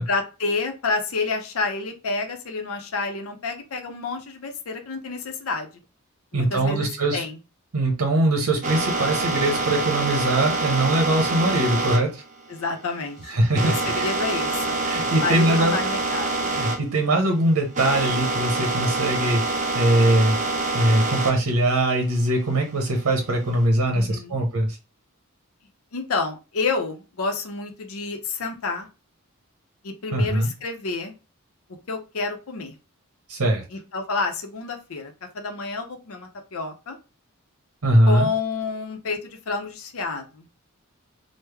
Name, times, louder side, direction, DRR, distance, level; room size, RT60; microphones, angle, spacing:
voice 1, 0.0-5.7 6.3-7.4 12.5-14.8 15.2-16.5 23.9-24.4 25.9-28.9 29.8-31.1 31.9-32.7 33.7-37.0 38.1-40.5, left 3 dB, 70° left, 5 dB, 0.6 m, -29 dB
voice 2, 6.3-7.2 7.7-12.2 13.3-14.1 14.8-15.7 16.5-19.4 19.7-20.4 20.7-24.8 30.1-30.5 33.3-33.6 37.8-38.3, right 1 dB, 90° right, 2 dB, 0.8 m, -21 dB
sound 1, 8.6-16.8 17.1-21.4 21.8-23.6, right 2 dB, 35° right, 0.6 m, -26 dB
3.2 x 2.1 x 3.3 m, 0.30 s
head